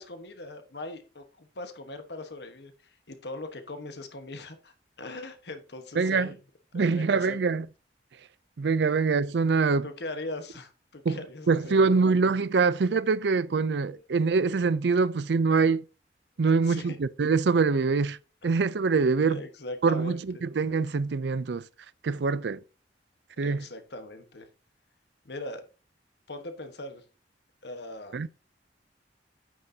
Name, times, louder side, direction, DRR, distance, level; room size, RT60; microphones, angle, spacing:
voice 1, 0.0-4.7 5.0-6.4 6.7-7.5 9.8-12.0 13.9-14.0 16.6-17.0 19.2-20.4 23.4-24.5 25.2-25.6 26.3-27.0 27.6-28.2, left 2 dB, 70° left, 1.3 m, -40 dB
voice 2, 6.0-6.3 6.7-7.7 8.6-9.9 11.0-11.2 11.5-15.8 16.4-18.2 18.4-19.4 19.8-21.6 22.0-22.6 23.4-23.7 28.1-28.3, right 4 dB, 70° right, 0.5 m, -24 dB
9.1 x 6.5 x 2.8 m
head